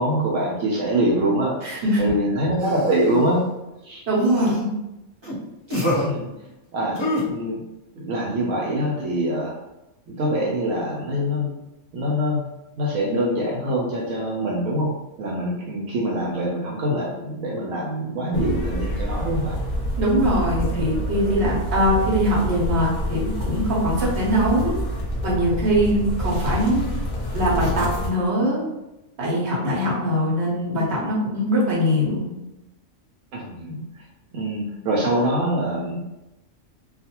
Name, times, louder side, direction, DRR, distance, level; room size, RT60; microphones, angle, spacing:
voice 1, 0.0-3.5 3.8-4.0 6.0-6.3 6.7-7.0 7.3-7.6 8.0-9.5 10.1-11.6 11.9-12.4 12.8-14.9 15.2-19.6 33.3-34.1 34.3-36.1, right 1 dB, 90° right, -2 dB, 1.0 m, -24 dB
voice 2, 1.6-2.0 4.1-4.7 20.0-24.7 25.2-26.8 27.3-28.6 29.2-32.3, equal, 60° right, -5 dB, 1.1 m, -22 dB
sound 1, 2.6-3.3 4.2-4.6 5.2-5.4 5.7-6.1 7.0-7.2, left 1 dB, 25° right, 0.9 m, -26 dB
sound 2, 18.3-28.1, equal, 45° left, 0.6 m, -27 dB
2.4 x 2.3 x 2.8 m, 0.95 s
omnidirectional pair, 1.3 m